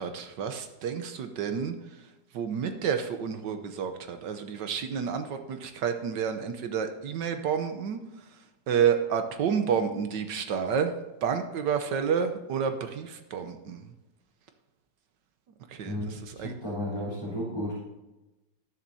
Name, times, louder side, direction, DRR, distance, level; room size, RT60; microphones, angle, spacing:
voice 1, 0.0-1.7 2.3-8.0 8.7-10.9 11.2-13.8 15.8-16.5, right 7 dB, 75° right, 7 dB, 1.5 m, -29 dB
voice 2, 15.8-17.7, left 1 dB, 15° right, -10 dB, 3.3 m, -33 dB
18.5 x 7.3 x 2.7 m, 1.0 s
omnidirectional pair, 1.9 m